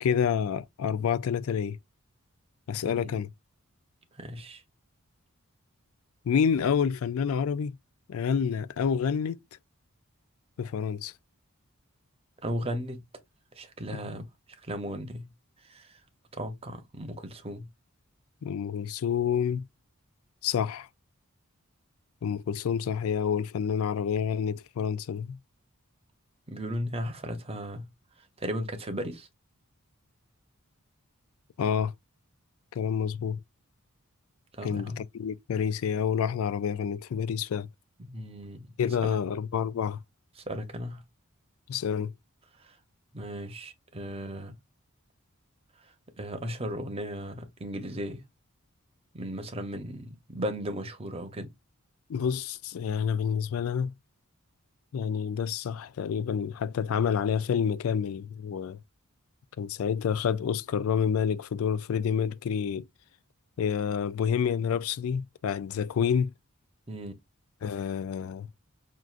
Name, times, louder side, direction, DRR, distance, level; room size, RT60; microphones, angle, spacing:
voice 1, 0.0-1.8 2.7-3.3 6.3-7.7 8.1-9.4 10.6-11.1 18.4-19.7 20.4-20.9 22.2-25.4 31.6-31.9 32.7-33.4 34.6-37.7 38.8-40.0 41.7-42.1 52.1-53.9 54.9-58.8 59.6-62.8 63.6-66.3 67.6-68.5, left 7 dB, 75° left, 0.3 m, -28 dB
voice 2, 2.8-3.2 4.2-4.6 12.4-13.0 13.6-14.3 14.6-15.3 15.7-15.9 16.3-17.7 26.5-27.9 28.4-29.3 34.5-35.0 38.0-39.2 40.5-41.0 42.6-42.7 43.1-44.5 46.2-48.2 49.1-51.5 66.9-67.1, equal, 25° right, 0.7 m, -36 dB
5.9 x 2.5 x 2.4 m
head